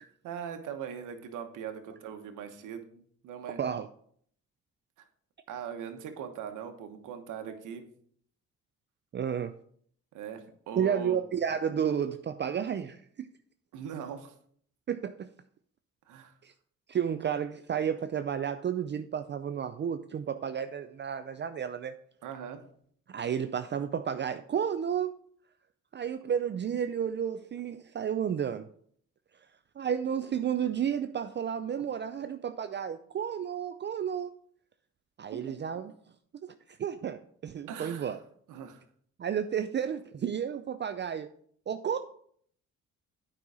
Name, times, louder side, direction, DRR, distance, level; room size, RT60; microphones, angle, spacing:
voice 1, 0.2-3.6 5.0-5.1 5.5-7.9 10.1-11.2 13.7-14.3 16.1-16.3 22.2-22.6 37.7-38.2 38.5-38.8, right 7 dB, 85° right, 6 dB, 1.2 m, -40 dB
voice 2, 9.1-9.5 10.8-13.3 14.9-15.3 16.4-16.5 16.9-21.9 23.1-25.2 25.9-28.7 29.8-34.3 35.2-35.9 36.4-36.5 36.8-38.2 39.2-41.3 41.7-42.0, right 8 dB, 35° right, 9 dB, 0.5 m, -32 dB
9.0 x 5.5 x 4.8 m, 0.62 s
cardioid pair, 90°, 30 cm